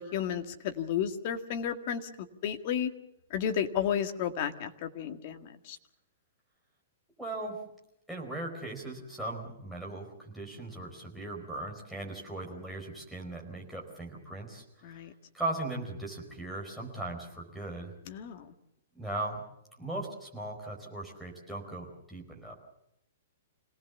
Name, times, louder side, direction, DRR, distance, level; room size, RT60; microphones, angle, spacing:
voice 1, 0.0-2.1 2.4-2.9 3.3-5.8 14.8-15.1 18.1-18.5, left 8 dB, 35° left, 6 dB, 1.9 m, -32 dB
voice 2, 7.2-7.6 8.1-15.1 15.3-17.9 18.9-19.4 19.8-22.5, right 2 dB, ahead, -4 dB, 4.6 m, -38 dB
27.0 x 18.5 x 7.1 m, 0.81 s
hypercardioid pair, 170°, 0 cm